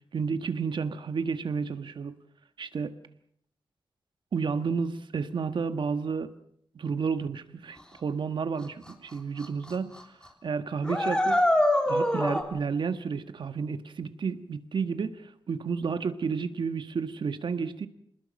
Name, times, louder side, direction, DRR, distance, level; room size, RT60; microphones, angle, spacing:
voice 1, 0.1-2.1 2.6-2.9 4.3-6.3 6.7-10.0 10.4-11.5 11.9-17.9, right 5 dB, 65° right, 9 dB, 1.5 m, -31 dB
sound 1, 8.9-9.0 9.4-9.7 10.0-10.1 10.8-12.4, left 1 dB, 10° left, 3.5 m, -24 dB
27.5 x 20.0 x 6.5 m, 0.69 s
wide cardioid pair, 110°, 9 cm